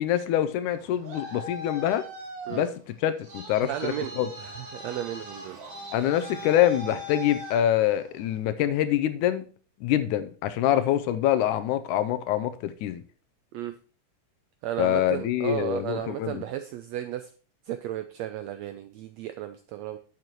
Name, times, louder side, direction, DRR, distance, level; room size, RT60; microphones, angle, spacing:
voice 1, 0.0-2.0 2.5-2.7 3.0-4.3 5.9-9.4 9.8-13.0 14.8-16.4, left 11 dB, 85° left, 11 dB, 2.0 m, -25 dB
Traffic noise roadway noise, 0.7-8.4, equal, 65° right, 4.0 m, -41 dB
voice 2, 3.6-5.6 10.7-10.8 13.5-13.7 14.6-17.3 17.7-20.0, right 12 dB, 85° right, 9 dB, 1.5 m, -34 dB
10.5 x 7.9 x 3.0 m, 0.39 s
omnidirectional pair, 3.6 m